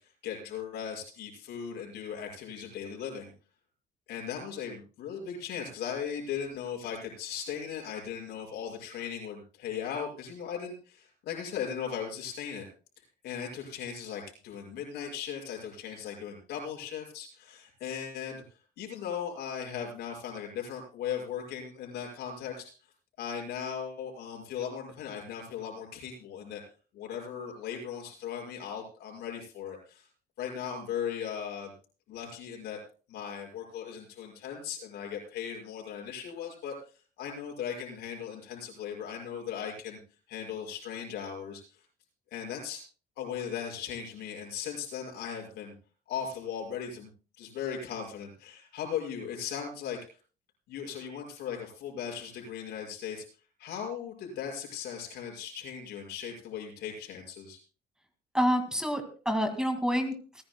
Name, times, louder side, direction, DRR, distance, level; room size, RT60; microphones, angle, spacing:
voice 1, 0.2-3.3 4.1-12.6 13.2-18.4 18.8-22.7 23.2-26.6 26.9-30.1 30.4-31.7 32.1-32.8 33.1-36.8 37.2-40.0 40.3-41.6 42.3-42.8 43.2-45.7 46.1-47.1 47.4-50.0 50.7-53.2 53.6-57.6, left 8 dB, 75° left, 1 dB, 5.8 m, -38 dB
voice 2, 58.3-60.4, equal, 5° right, 6 dB, 2.0 m, -28 dB
28.5 x 10.5 x 2.2 m, 0.36 s
cardioid pair, 110°, 17 cm